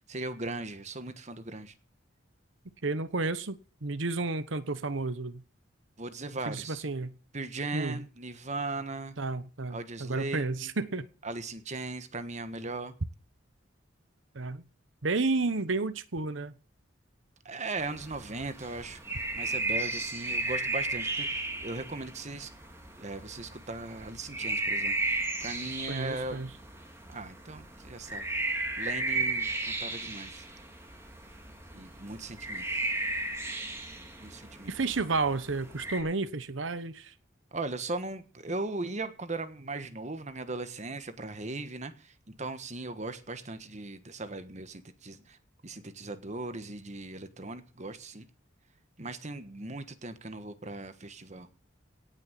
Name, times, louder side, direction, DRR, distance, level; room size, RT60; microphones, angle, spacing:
voice 1, 0.1-1.7 6.0-6.8 7.3-9.2 9.7-10.7 11.2-12.9 17.4-19.0 19.3-22.5 23.0-26.4 27.1-28.2 28.8-30.4 31.7-32.9 34.2-34.7 37.5-45.4 45.6-48.3 49.0-51.5, right 2 dB, 40° right, 10 dB, 1.4 m, -38 dB
voice 2, 2.8-5.4 6.5-7.2 7.7-8.0 9.2-11.1 14.3-14.6 15.0-16.6 25.9-26.5 34.7-37.1, right 3 dB, 80° right, 12 dB, 1.1 m, -31 dB
sound 1, 17.8-36.0, right 2 dB, 15° right, 2.6 m, -35 dB
17.5 x 6.4 x 7.5 m, 0.36 s
head